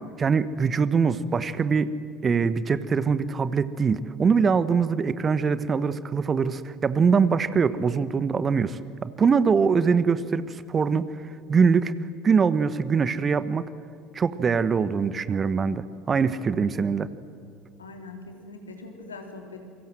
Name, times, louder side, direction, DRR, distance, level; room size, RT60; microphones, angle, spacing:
voice 1, 0.0-1.9 2.2-11.0 11.5-11.9 12.2-13.6 14.1-17.1, right 5 dB, 30° right, 15 dB, 1.3 m, -23 dB
voice 2, 17.8-19.7, left 3 dB, 85° left, 3 dB, 3.7 m, -42 dB
28.0 x 24.5 x 7.7 m, 2.2 s
figure-of-eight pair, 70°, 0 cm